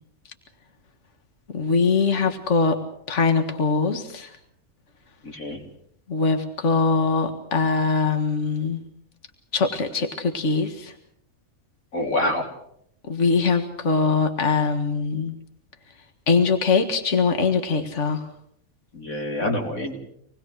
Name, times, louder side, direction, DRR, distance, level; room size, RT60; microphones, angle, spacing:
voice 1, 1.5-2.8 3.1-4.3 6.1-8.8 9.5-10.9 13.1-15.3 16.3-18.2, left 4 dB, 55° left, 6 dB, 2.2 m, -22 dB
voice 2, 5.2-5.6 11.9-12.5 18.9-20.0, left 1 dB, 70° left, 2 dB, 4.1 m, -26 dB
26.5 x 20.0 x 6.4 m, 0.71 s
omnidirectional pair, 1.5 m